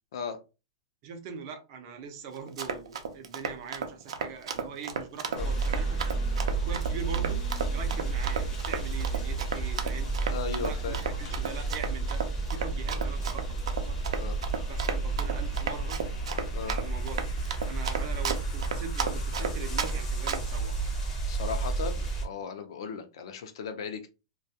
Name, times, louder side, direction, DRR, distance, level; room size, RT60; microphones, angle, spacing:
voice 1, 1.0-6.2 6.5-7.5 7.7-10.1 10.6-14.0 14.7-16.0 16.6-17.2 17.7-21.0, right 5 dB, 35° right, 0.5 m, -42 dB
Run, 2.4-19.9 20.3-20.6, right 6 dB, 85° right, 0.5 m, -33 dB
sound 1, 5.3-22.2, right 3 dB, 20° left, 0.6 m, -31 dB
voice 2, 10.3-11.0 12.9-13.1 14.2-14.4 16.5-16.7 21.3-24.1, left 6 dB, 60° left, 0.5 m, -37 dB
2.2 x 2.2 x 2.7 m
supercardioid pair, 165°, 3 cm